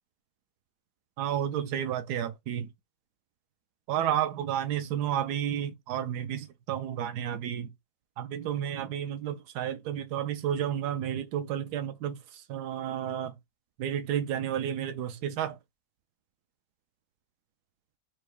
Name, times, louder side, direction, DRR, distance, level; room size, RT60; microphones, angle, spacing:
voice 1, 1.2-2.7 3.9-7.7 8.2-13.4 13.8-15.6, right 10 dB, 90° right, 1.1 m, -31 dB
4.6 x 2.1 x 4.6 m
omnidirectional pair, 1.7 m